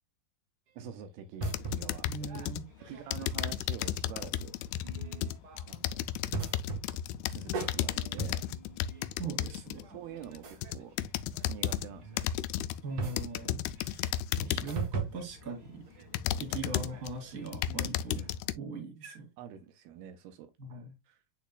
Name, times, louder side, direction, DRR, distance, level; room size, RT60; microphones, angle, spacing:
voice 1, 0.8-2.1 2.8-4.6 5.7-6.1 7.3-8.5 9.9-11.0 11.5-12.3 13.8-13.9 16.6-16.8 19.4-20.5 21.1-21.2, right 9 dB, 80° right, 2.6 m, -46 dB
sound 1, 1.4-2.7 3.1-9.8 10.4-11.9 12.2-12.8 13.2-14.8 15.4-15.5 16.1-17.1 17.5-18.5, left 11 dB, 85° left, 2.3 m, -34 dB
sound 2, 1.4-3.8 4.1-4.3 4.7-5.6 6.3-12.3 12.7-18.4, right 5 dB, 60° right, 1.6 m, -42 dB
voice 2, 2.1-3.0 9.2-10.0 12.8-15.9 16.4-18.2 18.5-19.3 20.6-21.0, right 3 dB, 30° right, 1.8 m, -41 dB
10.5 x 4.1 x 2.2 m
omnidirectional pair, 4.7 m